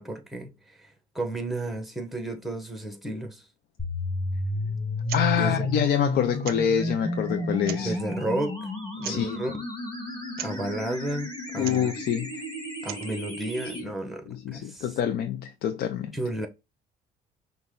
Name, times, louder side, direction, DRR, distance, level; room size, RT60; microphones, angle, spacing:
voice 1, 0.0-3.5 5.3-5.7 7.8-8.6 8.9-9.6 10.4-11.9 12.8-14.9 16.1-16.5, right 1 dB, ahead, 1.1 m, -33 dB
sound 1, 3.8-13.8, left 1 dB, 25° left, 2.7 m, -32 dB
sound 2, 5.0-5.3 5.5-5.6 6.4-6.8 7.5-8.0 9.0-9.3 10.3-10.6 11.6-11.9 12.7-13.1, right 13 dB, 65° right, 0.4 m, -38 dB
voice 2, 5.1-8.0 9.1-9.4 11.6-12.4 13.7-13.9 14.3-16.1, left 8 dB, 65° left, 0.5 m, -26 dB
5.7 x 2.3 x 3.8 m
cardioid pair, 110°, 17 cm